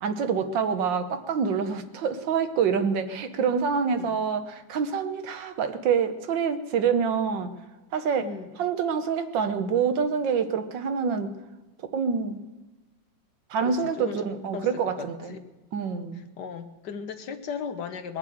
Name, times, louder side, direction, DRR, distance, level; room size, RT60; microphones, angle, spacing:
voice 1, 0.0-7.5 7.9-8.3 8.6-11.3 11.9-12.4 13.5-15.3 15.7-16.3, right 6 dB, 75° right, 8 dB, 1.7 m, -26 dB
voice 2, 8.2-8.5 13.6-14.2 14.5-14.7 15.0-15.5 16.1-18.2, left 6 dB, 65° left, 8 dB, 1.5 m, -37 dB
21.0 x 7.2 x 7.9 m, 1.1 s
omnidirectional pair, 2.0 m